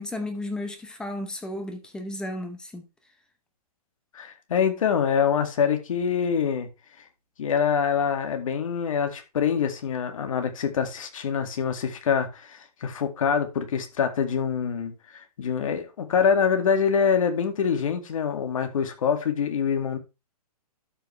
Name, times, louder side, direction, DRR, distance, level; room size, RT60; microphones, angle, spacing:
voice 1, 0.0-2.8, left 1 dB, 5° left, 0.8 m, -33 dB
voice 2, 4.1-6.7 7.4-20.0, left 7 dB, 55° left, 2.1 m, -25 dB
12.5 x 5.5 x 3.3 m
hypercardioid pair, 165°, 20 cm